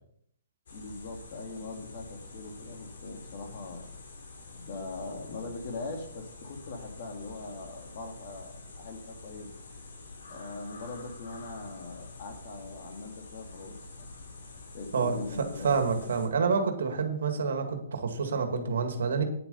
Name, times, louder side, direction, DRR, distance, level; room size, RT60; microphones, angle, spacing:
sound 1, 0.7-16.3, left 3 dB, 70° left, 3.3 m, -47 dB
voice 1, 0.7-3.9 4.5-9.5 10.3-14.1 14.7-15.8, left 3 dB, 45° left, 3 dB, 2.2 m, -41 dB
voice 2, 14.9-19.2, right 5 dB, 75° right, 6 dB, 2.1 m, -28 dB
10.0 x 7.3 x 5.5 m, 0.69 s
hypercardioid pair, 160°, 0 cm